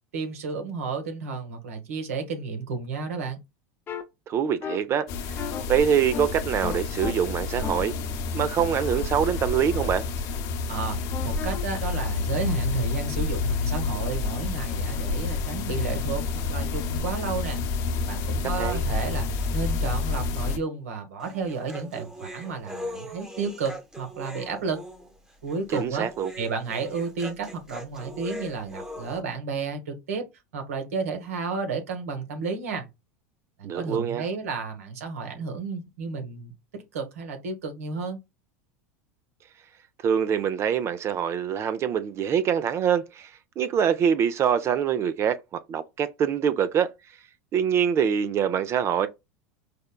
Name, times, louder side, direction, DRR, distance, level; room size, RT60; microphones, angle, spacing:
voice 1, 0.1-3.4 10.7-17.6 18.0-24.8 25.4-26.1 26.4-30.3 30.5-32.9 33.6-36.5 36.9-38.2, right 4 dB, 90° right, 1.2 m, -32 dB
sound 1, 3.9-4.0 4.6-4.8 5.4-5.6 6.1-6.3 6.6-7.1 7.6-9.9 11.1-11.6, left 7 dB, 30° left, 0.6 m, -36 dB
voice 2, 4.3-5.3 5.7-7.9 8.3-10.0 18.6-18.8 25.7-26.3 33.6-34.2 40.0-46.9 47.5-49.1, right 8 dB, 35° right, 0.4 m, -24 dB
sound 2, 5.1-20.6, left 4 dB, 55° left, 0.9 m, -29 dB
Human voice, 21.2-29.2, equal, 10° right, 0.9 m, -40 dB
5.0 x 2.2 x 2.2 m
supercardioid pair, 110°, 8 cm